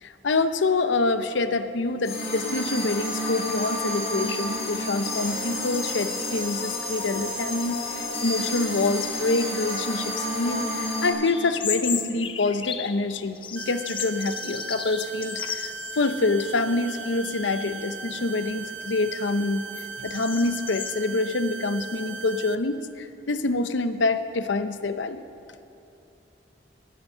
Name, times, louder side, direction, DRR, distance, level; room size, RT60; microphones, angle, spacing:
voice 1, 0.0-19.6 20.0-25.2, left 3 dB, 90° left, 11 dB, 0.7 m, -26 dB
sound 1, 2.0-11.1, left 1 dB, 60° left, 3.7 m, -30 dB
sound 2, 11.2-13.0 13.3-16.1 16.4-16.5 17.3-17.6 18.1-20.9, left 8 dB, 30° left, 0.5 m, -34 dB
sound 3, 13.6-22.6, right 5 dB, 80° right, 0.6 m, -38 dB
15.5 x 9.8 x 5.6 m, 2.8 s
head